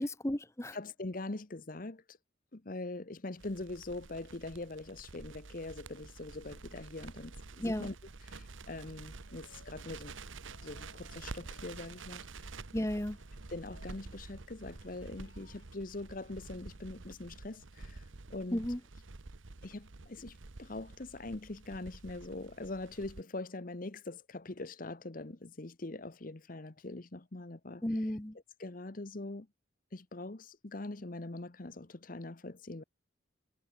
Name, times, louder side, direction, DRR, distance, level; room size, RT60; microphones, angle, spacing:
voice 1, 0.0-0.8 7.6-7.9 12.7-13.2 18.5-18.8 27.8-28.4, left 1 dB, 15° left, 1.0 m, -33 dB
voice 2, 0.7-2.2 2.5-7.9 8.3-10.2 10.6-12.3 13.5-18.0 18.3-18.6 19.6-27.8 28.6-29.5 29.9-32.8, left 2 dB, 45° left, 1.0 m, -43 dB
Crackle, 3.4-23.2, right 3 dB, 75° right, 1.1 m, -49 dB
sound 1, 9.3-9.9 10.4-12.2 12.8-14.1 14.6-15.7, left 3 dB, 70° left, 6.8 m, -64 dB
head